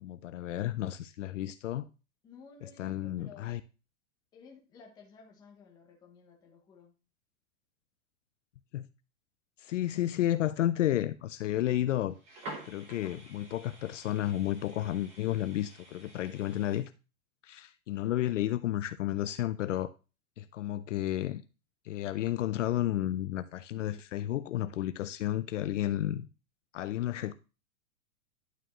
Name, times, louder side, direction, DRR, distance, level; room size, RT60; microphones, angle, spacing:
voice 1, 0.0-1.9 2.8-3.6 8.7-8.9 9.6-12.2 12.6-16.9 17.4-19.9 20.4-21.4 21.9-26.3 26.7-27.3, left 13 dB, 60° left, 0.5 m, -32 dB
voice 2, 2.2-3.6 4.3-7.0, left 5 dB, 10° left, 0.9 m, -55 dB
sound 1, 12.1-16.8, right 2 dB, 15° right, 1.2 m, -49 dB
11.0 x 4.6 x 3.0 m
supercardioid pair, 170°, 43 cm